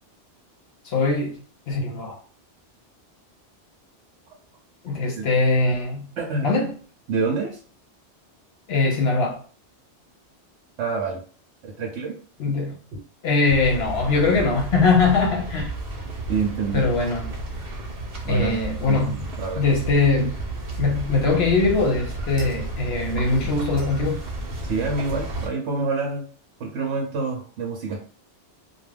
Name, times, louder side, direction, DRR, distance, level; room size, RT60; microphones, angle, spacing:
voice 1, 0.8-1.3 1.7-2.2 4.8-6.1 6.4-6.7 8.7-9.4 12.4-12.8 13.2-15.7 16.7-17.2 18.3-19.2 19.5-20.4 20.8-24.2, left 3 dB, 65° left, 0.8 m, -21 dB
voice 2, 4.9-5.3 6.2-6.5 7.1-7.6 10.8-11.2 11.6-12.2 12.9-13.0 16.3-16.8 18.2-18.6 18.9-19.6 24.6-26.2 26.6-28.0, right 4 dB, 75° right, 0.9 m, -27 dB
sound 1, 13.5-25.5, right 2 dB, 50° right, 0.7 m, -32 dB
2.4 x 2.2 x 3.2 m
omnidirectional pair, 1.2 m